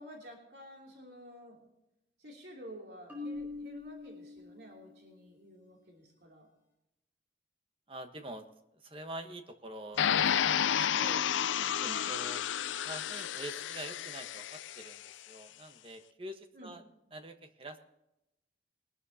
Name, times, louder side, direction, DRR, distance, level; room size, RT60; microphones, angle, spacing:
voice 1, 0.0-1.7 2.2-6.5 11.8-12.1 16.5-16.8, equal, 60° right, 0 dB, 3.1 m, -50 dB
Marimba xylophone, 3.1-5.1, left 3 dB, 10° right, 4.4 m, -43 dB
voice 2, 7.9-8.5 8.8-11.3 11.8-12.4 12.8-16.8 17.1-17.8, right 1 dB, 30° right, 7 dB, 1.2 m, -46 dB
sound 1, 10.0-15.0, left 9 dB, 90° left, 0.5 m, -31 dB
21.0 x 12.5 x 2.8 m, 0.89 s
head